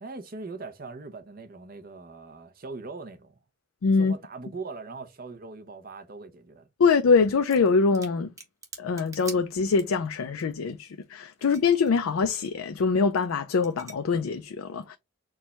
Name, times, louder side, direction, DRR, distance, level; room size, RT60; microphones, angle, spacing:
voice 1, 0.0-3.4 4.0-6.7, right 3 dB, 45° right, 0.6 m, -41 dB
voice 2, 3.8-4.1 6.8-8.3 8.8-15.0, left 5 dB, 90° left, 0.4 m, -24 dB
sound 1, 7.4-7.7 7.9-10.1 10.4-10.5 10.7-11.9 12.2-12.5 13.1-13.3 13.6-13.9, right 3 dB, 15° right, 1.0 m, -44 dB
4.6 x 2.2 x 4.1 m
head